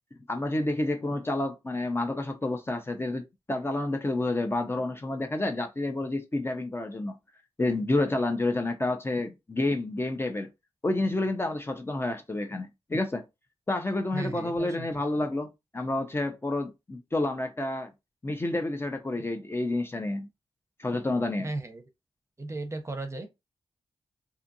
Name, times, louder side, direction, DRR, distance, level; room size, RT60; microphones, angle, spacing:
voice 1, 0.3-7.2 7.6-10.5 10.8-13.2 13.7-17.9 18.2-20.3 20.8-21.5, left 2 dB, 25° left, 0.5 m, -29 dB
voice 2, 14.1-15.0 21.4-21.8 22.4-23.3, right 2 dB, 30° right, 0.6 m, -35 dB
2.6 x 2.4 x 2.6 m
cardioid pair, 70°, 10 cm